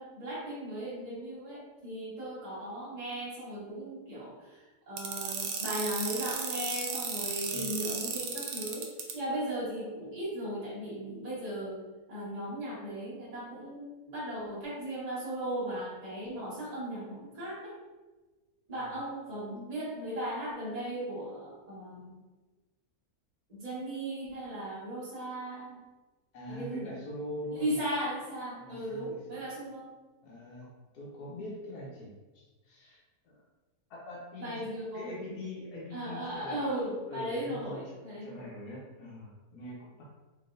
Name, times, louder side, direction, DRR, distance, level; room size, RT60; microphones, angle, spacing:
voice 1, 0.0-8.9 9.1-11.8 12.1-17.8 18.7-22.2 23.5-25.8 26.5-26.9 27.5-29.9 34.4-35.1 35.9-38.4, right 1 dB, 25° right, -9 dB, 1.2 m, -37 dB
sound 1, 5.0-9.1, right 6 dB, 85° right, 1.2 m, -34 dB
voice 2, 26.3-27.8 28.6-29.4 30.2-30.7 30.9-32.1 32.3-33.4 33.9-34.7 34.9-36.6 37.1-40.0, left 1 dB, 80° left, -5 dB, 1.4 m, -43 dB
3.9 x 3.4 x 2.5 m, 1.2 s
omnidirectional pair, 1.7 m